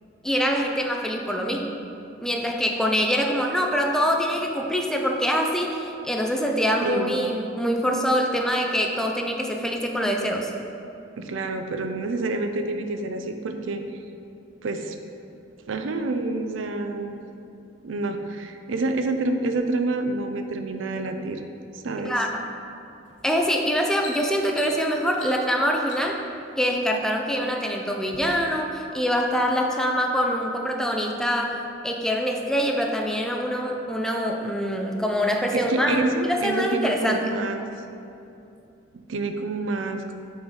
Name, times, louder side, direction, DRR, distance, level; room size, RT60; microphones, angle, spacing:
voice 1, 0.2-1.7 2.2-10.5 22.1-22.5 23.2-26.2 26.6-37.2, equal, 5° left, 1 dB, 0.4 m, -24 dB
voice 2, 6.8-7.1 11.2-13.8 14.6-15.0 15.7-17.2 17.8-21.4 21.8-22.1 35.5-37.6 38.9-40.2, right 2 dB, 90° right, 6 dB, 0.5 m, -27 dB
sound 1, 23.1-23.3 23.7-26.3 27.1-27.7 28.0-28.2, left 4 dB, 75° left, 0.8 m, -43 dB
6.1 x 4.0 x 4.7 m, 2.7 s
head